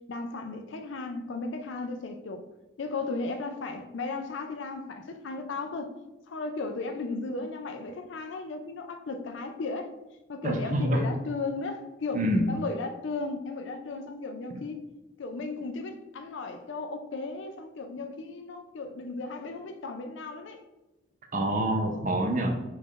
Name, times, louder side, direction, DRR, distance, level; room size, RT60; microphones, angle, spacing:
voice 1, 0.1-2.4 2.8-5.9 6.3-9.9 10.3-14.8 15.2-20.6, left 3 dB, 70° left, 6 dB, 0.4 m, -35 dB
voice 2, 10.4-11.1 12.1-12.5 21.3-22.6, right 1 dB, 40° right, 3 dB, 0.5 m, -26 dB
5.1 x 2.5 x 3.7 m, 1.0 s
head